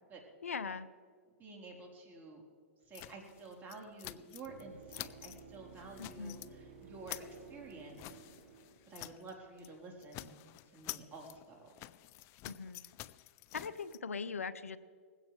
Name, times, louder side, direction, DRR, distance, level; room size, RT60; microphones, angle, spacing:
voice 1, 0.4-0.9 6.0-6.4 12.5-12.8 13.5-14.8, left 5 dB, 85° left, 16 dB, 0.7 m, -40 dB
voice 2, 1.4-2.4 2.9-8.2 8.9-10.4 10.7-11.7, right 3 dB, 25° right, -1 dB, 3.9 m, -50 dB
sound 1, 2.9-4.6 4.9-5.4 5.8-6.5 6.8-9.3 9.6-9.8 10.0-14.0, left 18 dB, 35° left, 0.5 m, -49 dB
sound 2, 4.4-9.5 13.5-13.6, right 5 dB, 45° right, 4.1 m, -55 dB
20.0 x 16.5 x 3.3 m, 2.1 s
hypercardioid pair, 115°, 7 cm